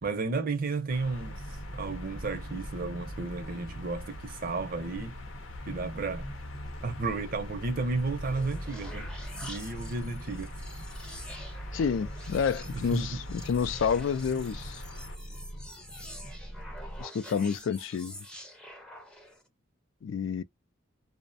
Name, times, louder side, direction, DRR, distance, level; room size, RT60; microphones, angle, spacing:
voice 1, 0.0-1.4 1.7-5.2 5.7-6.3 6.8-9.1 9.4-10.5 12.7-13.2, right 3 dB, 45° right, 0.6 m, -33 dB
sound 1, 0.9-15.2, left 1 dB, 85° left, 0.7 m, -44 dB
sound 2, 1.2-17.0, equal, 45° left, 0.8 m, -43 dB
sound 3, 8.0-19.5, equal, 5° left, 0.5 m, -47 dB
voice 2, 11.7-14.8 17.0-18.2 20.0-20.4, left 6 dB, 70° left, 0.3 m, -29 dB
2.5 x 2.1 x 2.5 m
head